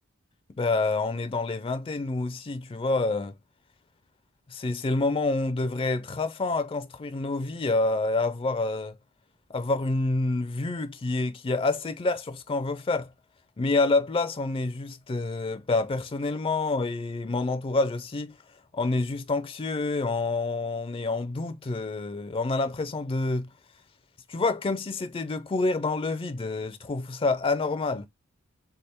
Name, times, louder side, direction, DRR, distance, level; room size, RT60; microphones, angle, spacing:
voice 1, 0.5-3.4 4.5-9.0 9.5-13.1 13.6-18.4 18.7-23.5 24.3-28.1, left 3 dB, 25° left, 0.4 m, -27 dB
3.7 x 3.4 x 4.2 m
head